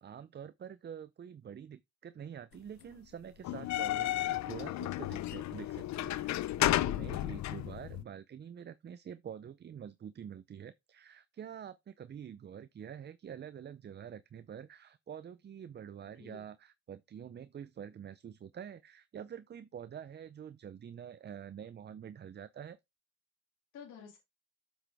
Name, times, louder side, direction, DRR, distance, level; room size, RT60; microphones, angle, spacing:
voice 1, 0.0-22.8, right 8 dB, 35° right, 0.5 m, -47 dB
sound 1, 3.4-8.0, left 14 dB, 65° left, 0.6 m, -33 dB
voice 2, 6.8-7.4 16.0-16.5 23.7-24.2, left 7 dB, 90° left, 2.5 m, -52 dB
7.8 x 6.2 x 3.4 m
cardioid pair, 90°, 30 cm